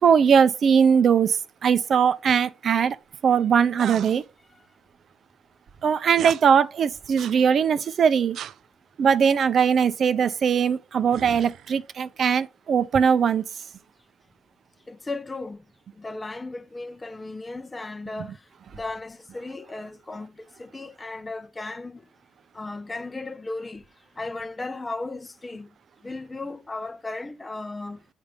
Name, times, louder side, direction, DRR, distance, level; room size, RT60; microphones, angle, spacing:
voice 1, 0.0-3.0 3.2-4.2 5.8-8.4 9.0-13.4, right 7 dB, 55° right, 0.7 m, -20 dB
sound 1, 3.8-4.2 6.1-6.4 7.2-7.4 8.3-8.6 11.1-11.8, right 10 dB, 75° right, 0.4 m, -36 dB
voice 2, 14.9-15.7 15.9-22.1 22.5-25.7 26.0-28.1, left 3 dB, 20° left, 0.7 m, -36 dB
9.4 x 3.6 x 5.1 m
cardioid pair, 90°, 0 cm